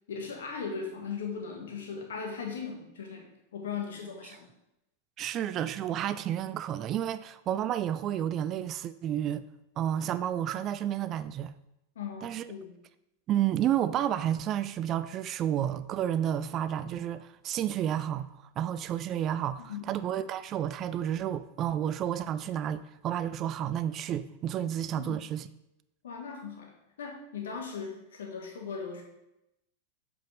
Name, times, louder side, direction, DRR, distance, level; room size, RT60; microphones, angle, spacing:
voice 1, 0.1-4.5 11.9-12.7 19.6-19.8 24.9-25.2 26.0-29.0, left 6 dB, 60° left, 1.5 m, -38 dB
voice 2, 5.2-9.4 9.8-11.5 12.2-12.5 13.3-18.3 18.6-25.5, right 10 dB, 35° right, 0.3 m, -31 dB
7.7 x 5.2 x 3.5 m
figure-of-eight pair, 90°, 0 cm